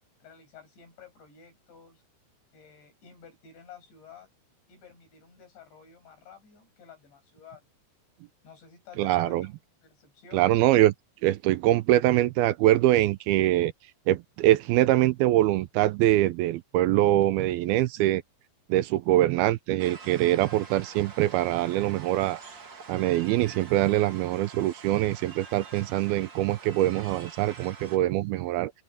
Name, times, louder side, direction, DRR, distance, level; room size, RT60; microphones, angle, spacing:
voice 1, 0.2-2.0 2.5-4.3 4.7-7.7 8.4-10.5, left 7 dB, 85° left, 10.0 m, -51 dB
voice 2, 9.0-9.5 10.3-10.9 11.2-13.7 14.1-18.2 18.7-22.4 22.9-28.7, right 15 dB, 80° right, 2.3 m, -23 dB
sound 1, 19.8-28.0, right 5 dB, 35° right, 2.0 m, -46 dB
open air
omnidirectional pair, 5.0 m